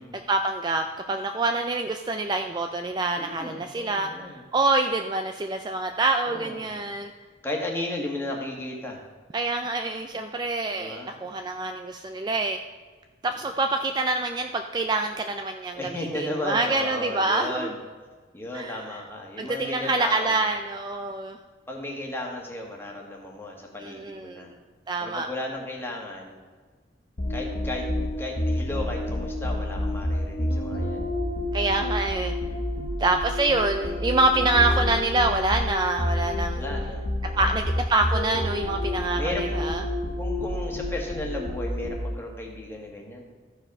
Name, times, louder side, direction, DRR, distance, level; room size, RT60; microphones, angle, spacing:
voice 1, 0.3-4.1 4.5-7.1 9.3-12.6 13.2-17.7 18.5-18.8 19.4-21.4 23.8-24.4 24.9-25.3 31.5-32.3 33.0-36.6 37.4-39.8, right 2 dB, 20° right, 5 dB, 0.3 m, -26 dB
voice 2, 3.2-4.4 6.3-6.8 7.4-9.0 10.8-11.2 15.7-17.8 18.3-20.4 21.7-24.5 25.0-26.4 27.3-31.1 32.5-32.9 33.7-34.0 36.5-37.5 39.2-39.5 40.2-43.3, left 1 dB, 10° left, -1 dB, 1.5 m, -35 dB
sound 1, 27.2-42.3, left 1 dB, 55° left, 0.9 m, -29 dB
14.0 x 4.9 x 5.3 m, 1.4 s
head